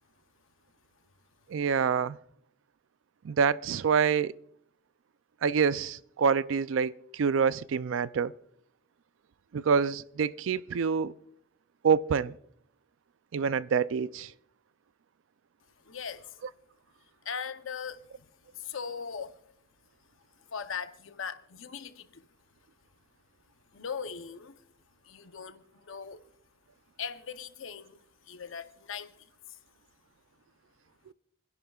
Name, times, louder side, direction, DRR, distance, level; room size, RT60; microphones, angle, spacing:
voice 1, 1.5-2.2 3.2-4.3 5.4-8.3 9.5-11.1 11.8-12.3 13.3-14.3, right 6 dB, 70° right, 0.4 m, -26 dB
voice 2, 15.8-16.4 17.2-19.4 20.5-22.3 23.7-24.6 25.0-26.2 27.0-29.6, left 6 dB, 70° left, 0.7 m, -40 dB
28.5 x 10.5 x 2.3 m
head